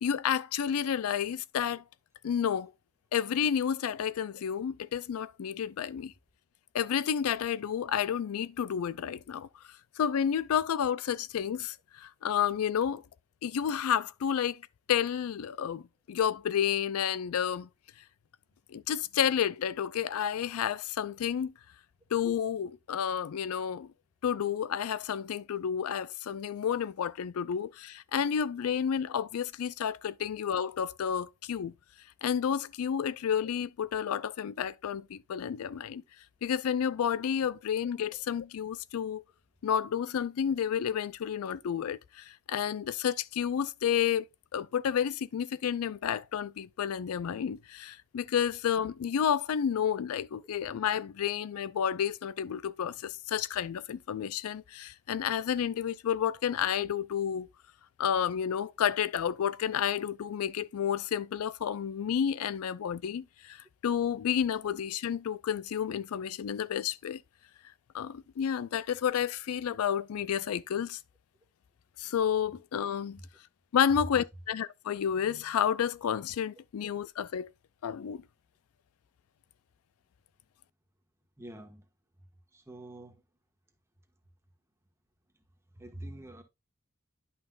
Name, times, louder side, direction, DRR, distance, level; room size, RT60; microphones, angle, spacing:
voice 1, 0.0-1.8 2.2-2.7 3.1-6.1 6.7-9.5 10.0-13.0 13.4-14.6 14.9-15.8 16.1-17.7 18.7-21.5 22.1-23.9 24.2-31.7 32.2-36.0 36.4-39.2 39.6-44.2 44.5-57.5 58.0-67.2 67.9-71.0 72.0-73.2 73.7-77.5 77.8-78.2, left 8 dB, 75° left, 0.4 m, -30 dB
voice 2, 81.4-81.9 82.5-83.2 85.7-86.4, right 1 dB, 10° right, 1.4 m, -46 dB
10.5 x 5.8 x 2.4 m
head